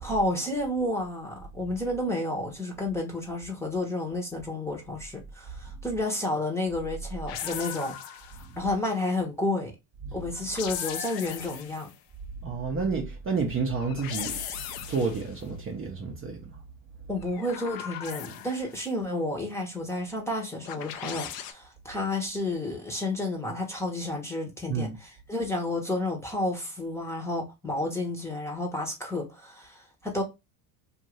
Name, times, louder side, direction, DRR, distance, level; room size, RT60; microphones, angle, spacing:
voice 1, 0.0-7.9 8.6-9.7 10.1-11.9 17.1-30.2, left 1 dB, 5° left, 0.9 m, -31 dB
sound 1, 7.3-8.6 10.3-12.0 13.7-15.4 17.2-18.8 20.6-21.5, left 9 dB, 55° left, 0.6 m, -38 dB
voice 2, 12.4-14.4 14.9-16.4 24.7-25.0, right 4 dB, 30° right, 0.7 m, -30 dB
2.6 x 2.5 x 3.0 m
supercardioid pair, 105°, 45 cm